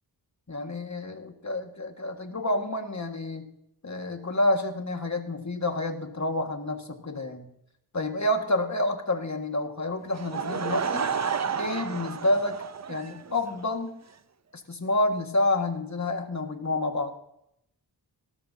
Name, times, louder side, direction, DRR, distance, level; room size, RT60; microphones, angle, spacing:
voice 1, 0.5-3.5 3.8-7.5 7.9-11.1 11.6-12.6 12.9-13.9 14.7-17.2, left 1 dB, 40° left, 5 dB, 1.8 m, -28 dB
Laughter / Crowd, 10.1-13.6, right 6 dB, 40° right, 0.6 m, -31 dB
18.0 x 13.5 x 2.8 m, 0.79 s
wide cardioid pair, 60°, 42 cm